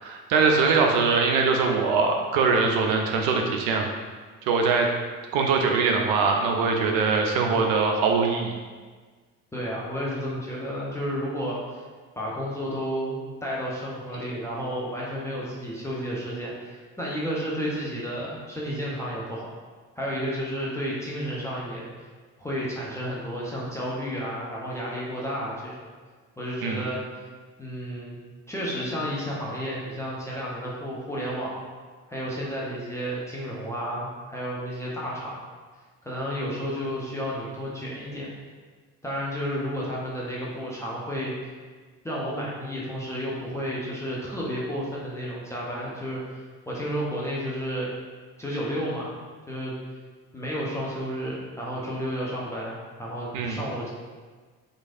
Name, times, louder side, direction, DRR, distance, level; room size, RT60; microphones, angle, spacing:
voice 1, 0.0-3.9 4.5-4.9 5.3-8.5 26.6-26.8 53.3-53.6, right 4 dB, 55° right, 2 dB, 0.5 m, -22 dB
voice 2, 9.5-11.8 12.2-19.5 20.0-21.9 22.4-25.7 26.4-27.0 27.6-28.2 28.5-31.5 32.1-35.4 36.0-38.3 39.0-41.3 42.0-47.9 48.4-49.2 49.5-49.7 50.3-53.9, equal, 5° left, -6 dB, 0.4 m, -31 dB
3.1 x 2.4 x 2.4 m, 1.5 s
figure-of-eight pair, 55°, 46 cm